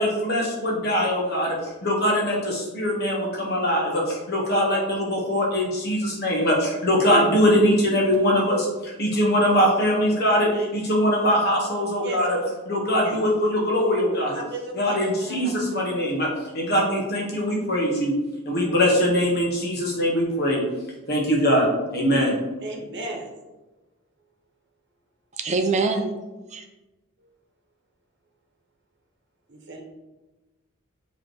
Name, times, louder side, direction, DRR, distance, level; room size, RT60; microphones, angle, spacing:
voice 1, 0.0-12.4 12.7-14.3 14.7-18.1 18.4-20.6 21.1-22.3, equal, 45° left, -1 dB, 1.4 m, -22 dB
voice 2, 14.3-15.0 15.3-15.4 22.6-23.3 29.5-29.8, right 2 dB, 50° right, 1 dB, 1.3 m, -34 dB
voice 3, 25.3-26.1 26.5-26.6, right 3 dB, 30° right, 4 dB, 0.7 m, -24 dB
7.5 x 3.2 x 4.6 m, 1.1 s
head